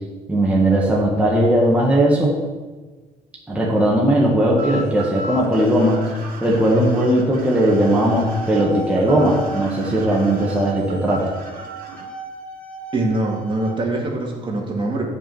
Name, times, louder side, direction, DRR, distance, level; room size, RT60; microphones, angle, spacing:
voice 1, 0.3-2.3 3.5-6.1 6.4-11.3, right 1 dB, 10° right, -4 dB, 1.6 m, -18 dB
sound 1, 4.6-12.0, right 1 dB, 55° right, 2.3 m, -36 dB
sound 2, 7.6-13.7, right 3 dB, 5° left, 1.5 m, -35 dB
voice 2, 12.9-15.1, right 2 dB, 30° right, -1 dB, 1.9 m, -23 dB
8.9 x 4.9 x 7.1 m, 1.3 s
cardioid pair, 110°, 17 cm